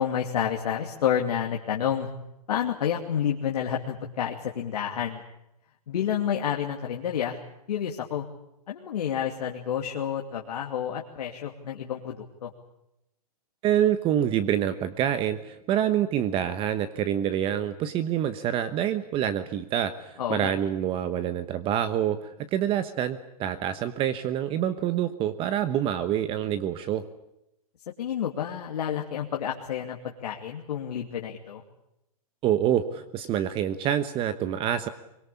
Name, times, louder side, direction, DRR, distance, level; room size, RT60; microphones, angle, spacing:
voice 1, 0.0-2.1 2.5-5.2 5.9-7.4 7.7-8.2 8.7-12.5 20.2-20.5 28.0-31.6, left 9 dB, 75° left, 0 dB, 2.7 m, -29 dB
voice 2, 13.6-27.0 32.4-34.9, right 10 dB, 25° right, 12 dB, 1.1 m, -26 dB
24.0 x 21.0 x 8.5 m, 0.86 s
hypercardioid pair, 140°, 20 cm